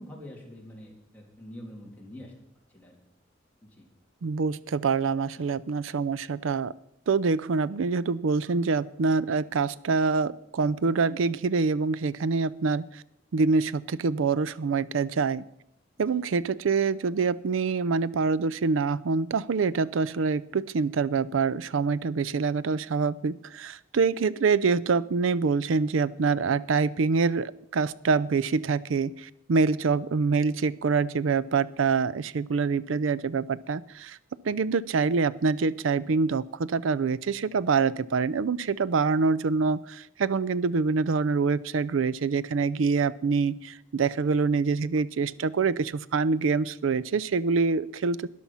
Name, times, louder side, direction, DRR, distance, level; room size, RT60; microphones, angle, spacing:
voice 1, 0.0-2.3 2.7-3.0 3.6-3.9 5.4-5.5 16.0-16.2 29.7-29.9 44.0-44.3, left 1 dB, 10° left, -2 dB, 3.0 m, -46 dB
voice 2, 4.2-6.7 7.1-13.0 13.3-15.4 16.0-34.2 34.4-48.3, right 4 dB, 80° right, 18 dB, 0.5 m, -25 dB
13.5 x 10.0 x 5.6 m, 0.78 s
head